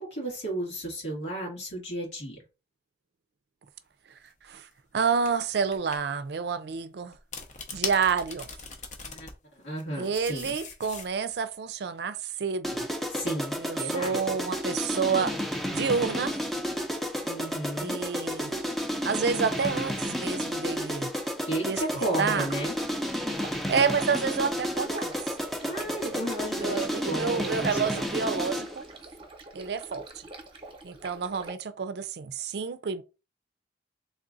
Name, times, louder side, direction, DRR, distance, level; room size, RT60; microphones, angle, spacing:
voice 1, 0.0-2.4 9.0-9.3 9.6-10.5 13.1-14.3 17.2-18.0 21.5-22.7 25.6-28.1, right 1 dB, 85° left, 2.0 m, -33 dB
sound 1, 4.3-4.5 5.2-5.3 5.7-6.0 7.1-9.3 9.8-11.3, left 5 dB, 40° left, 0.7 m, -39 dB
voice 2, 4.9-7.1 7.7-8.5 10.0-12.9 13.4-15.4 15.7-16.4 17.8-18.6 19.0-21.1 21.6-22.5 23.7-25.1 25.9-26.3 26.6-28.8 29.5-30.2 30.8-33.0, right 5 dB, 65° right, 0.4 m, -29 dB
sound 2, 12.6-28.8, equal, ahead, 0.5 m, -32 dB
Stream, 22.4-31.5, right 2 dB, 30° right, 0.8 m, -45 dB
3.5 x 2.4 x 3.9 m
head